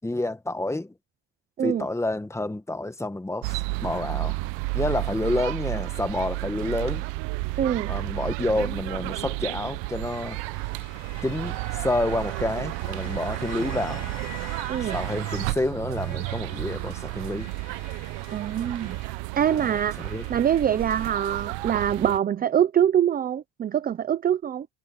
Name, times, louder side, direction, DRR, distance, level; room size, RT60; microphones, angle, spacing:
voice 1, 0.0-0.9 1.6-4.4 4.7-7.0 7.9-10.4 11.2-14.0 14.9-17.5 19.5-19.7 20.0-20.2, left 2 dB, 5° left, 1.4 m, -29 dB
sound 1, 3.4-22.2, right 23 dB, 70° right, 0.9 m, -32 dB
voice 2, 7.6-7.9 14.7-15.0 18.3-19.0 19.4-20.0 20.3-24.7, right 9 dB, 20° right, 0.5 m, -24 dB
sound 2, 9.0-15.6 15.9-21.3, left 9 dB, 35° left, 2.7 m, -48 dB
sound 3, 15.5-21.7, right 14 dB, 55° right, 3.3 m, -49 dB
cardioid pair, 140°, 46 cm